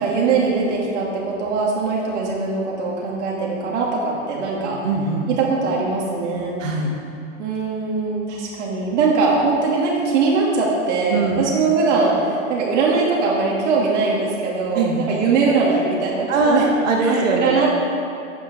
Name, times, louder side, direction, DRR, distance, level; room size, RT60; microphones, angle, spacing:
voice 1, 0.0-4.8 5.3-6.6 7.4-16.7 17.0-17.8, right 4 dB, 65° right, -4 dB, 2.6 m, -21 dB
voice 2, 4.8-5.3 6.6-6.9 11.1-11.5 14.7-15.1 16.3-17.6, right 3 dB, 85° right, 0 dB, 2.2 m, -20 dB
10.0 x 6.0 x 6.2 m, 2.6 s
hypercardioid pair, 140°, 38 cm